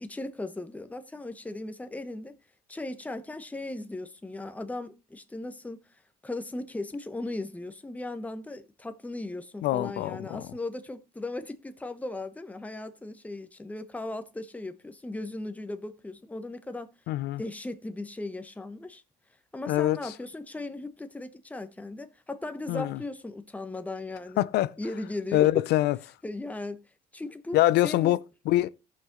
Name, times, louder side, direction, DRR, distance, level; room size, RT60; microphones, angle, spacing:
voice 1, 0.0-2.4 2.7-5.8 6.2-16.9 17.4-19.0 19.5-24.4 24.8-25.6 26.2-26.8 27.1-27.6 27.8-28.2, left 2 dB, 10° left, 1.0 m, -37 dB
voice 2, 9.6-10.5 17.1-17.4 19.7-20.1 22.7-23.0 24.4-24.7 25.3-26.0 27.5-28.2 28.5-28.7, left 15 dB, 75° left, 0.5 m, -24 dB
17.0 x 5.8 x 3.0 m
cardioid pair, 110°, 17 cm